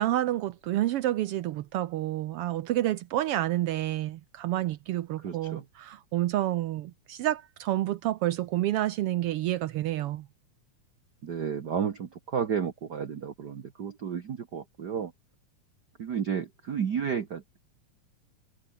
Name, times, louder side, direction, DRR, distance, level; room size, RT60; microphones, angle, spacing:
voice 1, 0.0-10.3, right 14 dB, 85° right, 1.3 m, -29 dB
voice 2, 5.2-5.6 11.2-15.1 16.0-17.4, right 7 dB, 50° right, 1.3 m, -32 dB
omnidirectional pair, 3.5 m